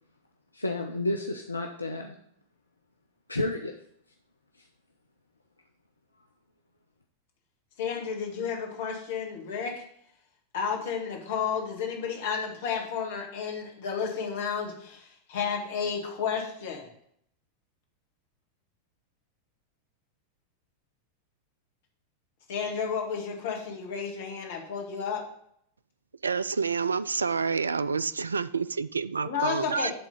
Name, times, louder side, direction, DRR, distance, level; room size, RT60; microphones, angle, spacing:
voice 1, 0.5-2.2 3.3-3.7, left 2 dB, 80° left, 3 dB, 0.6 m, -31 dB
voice 2, 7.8-9.8 10.5-16.9 22.5-25.2 29.2-29.9, left 6 dB, 55° left, 0 dB, 1.8 m, -32 dB
voice 3, 26.2-29.9, right 5 dB, 75° right, 17 dB, 0.3 m, -28 dB
11.0 x 3.7 x 5.3 m, 0.69 s
figure-of-eight pair, 90°, 0 cm